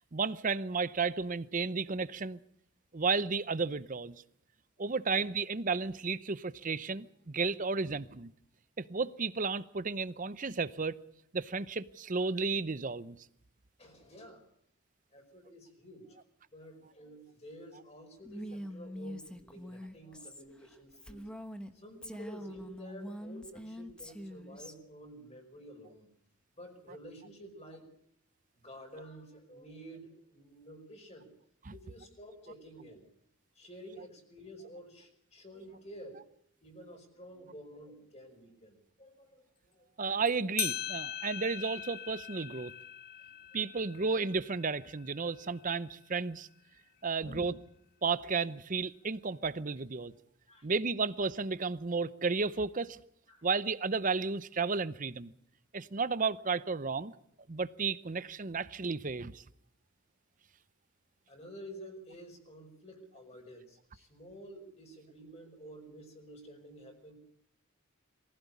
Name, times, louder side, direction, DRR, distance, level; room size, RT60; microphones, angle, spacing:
voice 1, 0.1-2.4 2.9-4.2 4.8-8.3 8.8-11.0 11.3-13.2 31.7-31.8 40.0-42.7 43.5-46.5 47.0-47.5 48.0-50.1 50.6-53.0 53.4-55.3 55.7-57.1 57.5-59.4, right 4 dB, 40° right, 0.7 m, -33 dB
voice 2, 13.8-14.4 15.1-16.2 16.5-21.2 21.7-26.1 26.6-27.9 28.5-31.3 31.7-33.1 33.5-36.2 36.6-39.9 43.2-43.3 47.2-47.5 50.5-50.7 53.3-53.4 61.3-67.1, equal, 30° left, 5.1 m, -50 dB
Female speech woman speaking, 18.2-21.7 22.0-24.7, equal, 5° left, 1.1 m, -44 dB
sound 1, 40.3-40.4 40.6-45.7, left 11 dB, 50° left, 0.9 m, -41 dB
23.0 x 15.5 x 8.4 m
head